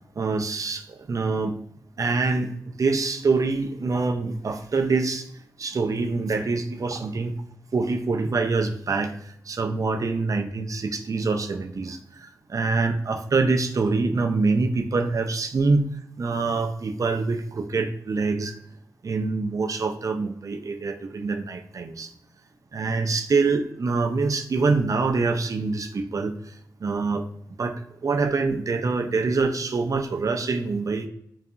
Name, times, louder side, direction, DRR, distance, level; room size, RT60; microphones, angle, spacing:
voice 1, 0.2-1.6 2.0-5.3 5.6-7.3 7.7-9.1 9.5-15.9 16.2-18.6 19.0-22.1 22.7-26.3 26.8-27.3 27.6-31.1, right 3 dB, 50° right, 5 dB, 0.4 m, -25 dB
2.7 x 2.3 x 2.4 m, 0.72 s
cardioid pair, 45°, 7 cm